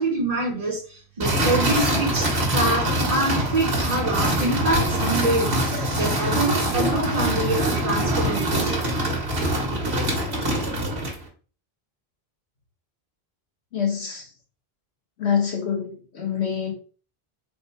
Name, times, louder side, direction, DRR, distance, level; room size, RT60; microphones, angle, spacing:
voice 1, 0.0-8.7, right 2 dB, 35° right, 1.3 m, -26 dB
sound 1, 1.2-11.2, right 1 dB, 80° right, 1.8 m, -24 dB
voice 2, 13.7-14.3 15.2-16.7, left 7 dB, 90° left, 1.5 m, -26 dB
4.9 x 2.2 x 4.6 m
omnidirectional pair, 1.1 m